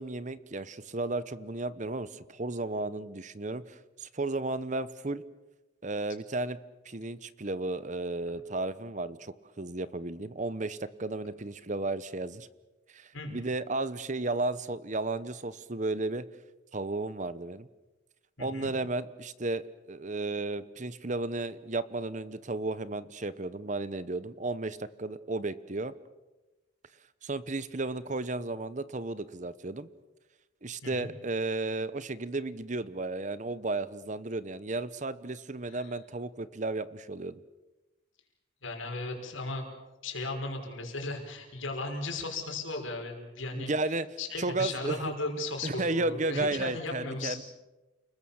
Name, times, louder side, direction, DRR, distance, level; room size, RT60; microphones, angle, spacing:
voice 1, 0.0-5.2 5.8-6.6 6.8-12.5 12.9-16.2 16.7-17.7 18.4-25.9 27.2-29.9 30.6-37.4 43.5-44.1 44.4-45.1 45.6-47.4, right 2 dB, 40° right, 15 dB, 0.9 m, -33 dB
voice 2, 18.4-18.7 30.8-31.1 35.7-35.9 38.6-39.6 40.0-43.7 44.2-47.4, left 2 dB, 80° left, 3 dB, 5.8 m, -36 dB
29.5 x 20.5 x 7.3 m, 1.1 s
head